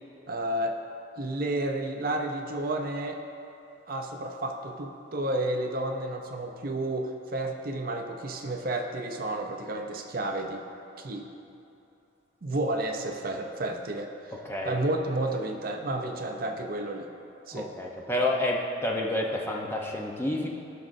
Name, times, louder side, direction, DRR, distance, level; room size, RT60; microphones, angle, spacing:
voice 1, 0.3-0.8 1.2-3.2 3.9-10.6 11.0-11.3 12.4-14.4 14.6-17.1 17.5-17.7, right 1 dB, 45° right, 3 dB, 0.5 m, -31 dB
voice 2, 14.4-14.8 17.5-20.5, left 1 dB, 10° left, -1 dB, 0.7 m, -29 dB
16.0 x 6.1 x 2.6 m, 2.9 s
head